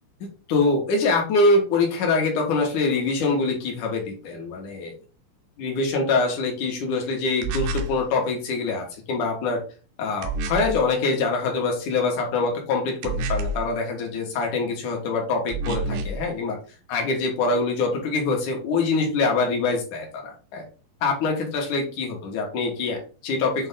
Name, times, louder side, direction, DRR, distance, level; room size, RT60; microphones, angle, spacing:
voice 1, 0.5-4.9 5.6-9.6 10.0-16.6 16.9-20.6 21.0-23.7, left 3 dB, 60° left, 1 dB, 2.7 m, -24 dB
sound 1, 7.4-8.0 10.2-10.8 13.0-13.7 15.5-16.2, right 2 dB, 90° right, 2.9 m, -28 dB
8.0 x 3.5 x 3.6 m, 0.37 s
omnidirectional pair, 4.4 m